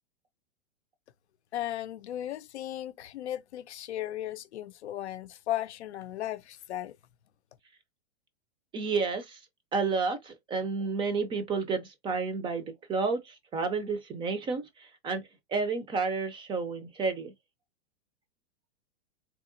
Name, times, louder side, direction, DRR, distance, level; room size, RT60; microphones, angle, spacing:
voice 1, 1.5-6.9, left 12 dB, 90° left, 0.5 m, -36 dB
voice 2, 8.7-9.4 9.7-15.2 15.5-17.3, right 4 dB, 15° right, 0.4 m, -31 dB
3.7 x 2.8 x 2.5 m
hypercardioid pair, 130°, 33 cm